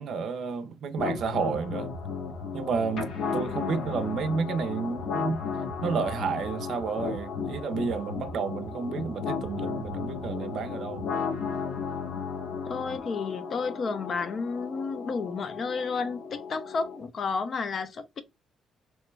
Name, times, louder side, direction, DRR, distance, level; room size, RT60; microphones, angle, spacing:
voice 1, 0.0-1.9 2.5-5.4 5.8-11.0, right 5 dB, 70° right, 0.5 m, -31 dB
sound 1, 1.0-17.0, left 5 dB, 75° left, 0.8 m, -34 dB
voice 2, 3.2-3.9 12.7-18.2, left 4 dB, 50° left, 0.5 m, -32 dB
3.0 x 2.2 x 3.1 m
cardioid pair, 90°, 0 cm